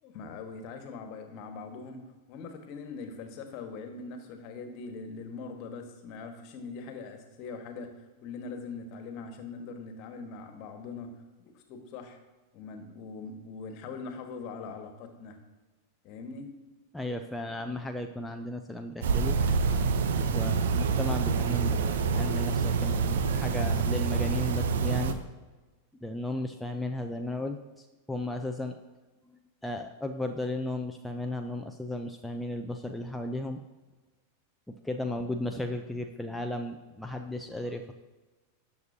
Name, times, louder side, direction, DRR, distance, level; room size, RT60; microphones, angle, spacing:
voice 1, 0.0-2.0 2.3-7.9 8.2-11.1 11.4-12.2 12.5-15.4 16.0-16.5, left 4 dB, 40° left, 5 dB, 1.6 m, -42 dB
voice 2, 16.9-19.4 20.3-25.2 26.0-28.8 29.6-33.6 34.7-37.9, left 1 dB, 5° left, 4 dB, 0.6 m, -35 dB
sound 1, 19.0-25.1, right 5 dB, 60° right, 0.8 m, -27 dB
18.5 x 6.9 x 2.9 m, 1.2 s
figure-of-eight pair, 90°, 0 cm